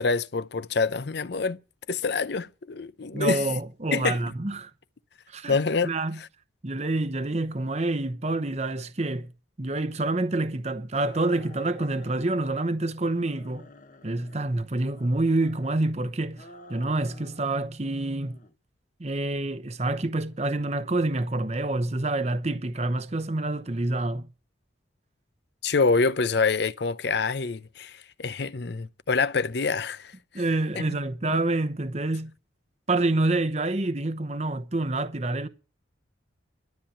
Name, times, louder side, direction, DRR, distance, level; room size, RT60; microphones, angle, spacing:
voice 1, 0.0-1.6 1.9-3.4 3.9-4.2 5.5-5.9 25.6-30.1, left 4 dB, 55° left, 0.6 m, -26 dB
voice 2, 3.1-4.7 5.3-5.6 5.8-6.2 6.6-9.3 9.6-13.7 14.0-18.4 19.0-24.3 30.3-32.3 32.9-35.5, right 2 dB, 35° right, 0.8 m, -27 dB
sound 1, 10.9-12.7 13.0-14.5 14.9-15.9 16.3-17.5 17.8-18.5, left 1 dB, 40° left, 1.2 m, -50 dB
13.0 x 7.4 x 8.6 m
head